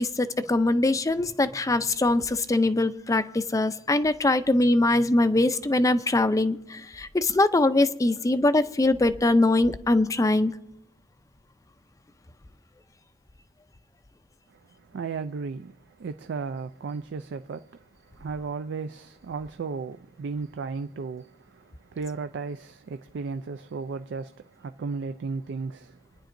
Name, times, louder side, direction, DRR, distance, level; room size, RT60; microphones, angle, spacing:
voice 1, 0.0-10.5, left 2 dB, 20° left, 0.4 m, -22 dB
voice 2, 14.5-26.0, right 4 dB, 65° right, 0.4 m, -35 dB
27.0 x 10.0 x 2.6 m
head